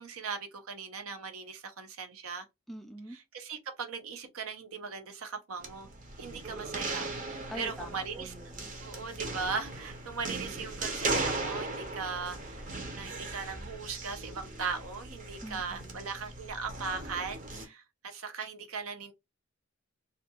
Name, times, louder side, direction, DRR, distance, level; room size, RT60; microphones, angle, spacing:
voice 1, 0.0-2.5 3.3-5.9 6.2-8.3 8.8-12.7 12.9-19.1, right 5 dB, 85° right, 0.6 m, -38 dB
voice 2, 2.7-3.2 7.5-8.7 15.4-16.1, equal, ahead, 0.4 m, -44 dB
sound 1, 5.6-17.7, right 2 dB, 40° right, 0.7 m, -38 dB
2.5 x 2.2 x 2.8 m
head